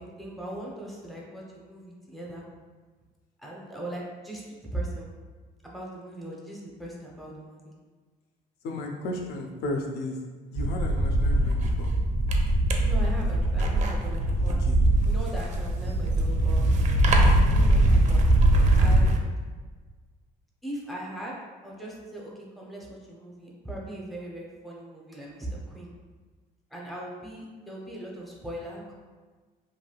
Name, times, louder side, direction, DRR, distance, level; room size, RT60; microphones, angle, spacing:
voice 1, 0.0-2.4 3.4-5.1 5.6-7.7 12.8-14.6 15.0-16.7 17.2-18.3 18.8-19.2 20.6-21.4 21.6-25.9 26.7-28.9, right 1 dB, ahead, -4 dB, 0.6 m, -39 dB
voice 2, 8.6-10.2 10.5-11.9 14.5-14.8 17.2-17.4, left 2 dB, 75° left, 2 dB, 0.5 m, -34 dB
sound 1, 10.6-19.2, right 1 dB, 45° right, 0.4 m, -22 dB
3.1 x 2.7 x 2.3 m, 1.4 s
cardioid pair, 110°, 17 cm